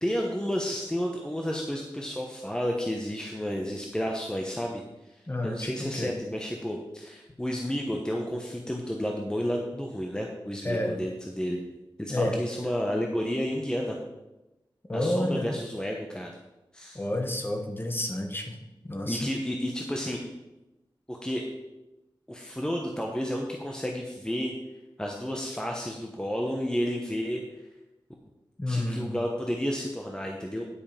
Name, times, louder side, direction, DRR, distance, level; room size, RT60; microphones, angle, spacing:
voice 1, 0.0-4.8 5.4-11.6 12.0-14.0 14.9-16.3 16.7-17.0 19.1-20.2 21.1-21.4 22.3-24.5 25.0-27.4 28.7-30.6, equal, 10° left, 0 dB, 1.0 m, -31 dB
voice 2, 5.3-6.1 10.6-10.9 12.1-12.4 14.9-15.5 16.9-18.6 18.8-19.3 28.6-29.1, left 1 dB, 25° left, 3 dB, 1.4 m, -30 dB
10.0 x 5.3 x 5.2 m, 1.0 s
wide cardioid pair, 70°, 9 cm